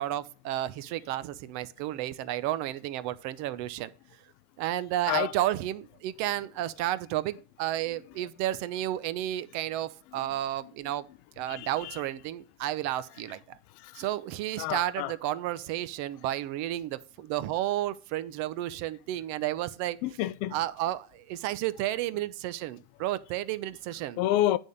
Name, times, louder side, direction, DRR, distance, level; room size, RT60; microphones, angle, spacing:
voice 1, 0.0-3.9 4.6-11.1 11.4-13.6 14.0-20.0 20.5-24.2, right 13 dB, 50° right, 0.7 m, -32 dB
voice 2, 11.5-12.0 14.6-15.1 20.0-20.5 24.2-24.6, left 14 dB, 45° left, 0.5 m, -28 dB
9.0 x 3.6 x 6.5 m
supercardioid pair, 130°, 36 cm